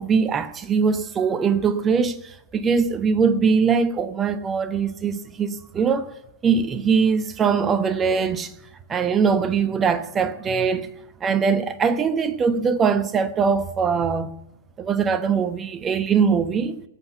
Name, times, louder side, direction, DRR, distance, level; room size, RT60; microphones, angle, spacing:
voice 1, 0.0-6.1 6.4-8.5 8.9-10.9 11.2-14.3 14.8-16.8, right 6 dB, 20° right, 1.1 m, -22 dB
19.5 x 8.2 x 5.8 m
figure-of-eight pair, 105°, 0 cm